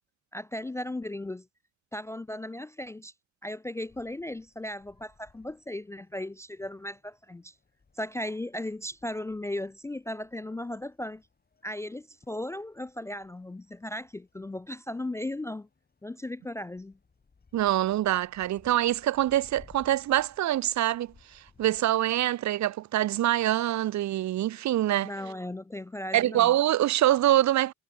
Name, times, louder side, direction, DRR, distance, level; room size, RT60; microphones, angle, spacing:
voice 1, 0.3-1.5 1.9-3.1 3.4-7.5 8.0-11.2 11.6-15.7 16.0-17.0 25.0-26.5, left 1 dB, 10° left, 0.3 m, -36 dB
sound 1, 3.8-21.8, left 4 dB, 30° left, 5.6 m, -62 dB
voice 2, 17.5-25.1 26.1-27.7, right 13 dB, 65° right, 0.8 m, -25 dB
cardioid pair, 90°, 30 cm